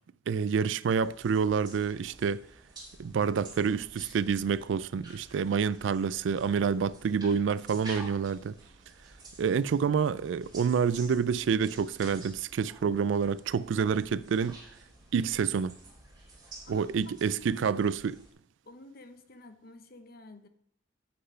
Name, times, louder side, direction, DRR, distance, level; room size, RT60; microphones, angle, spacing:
voice 1, 0.3-2.4 3.0-8.6 9.4-14.6 15.1-15.8 16.7-18.2, right 6 dB, 75° right, 0.3 m, -28 dB
sound 1, 1.0-18.3, right 2 dB, 25° right, 2.7 m, -51 dB
voice 2, 16.2-17.7 18.6-20.5, left 2 dB, 55° left, 0.9 m, -51 dB
7.8 x 6.6 x 5.5 m
head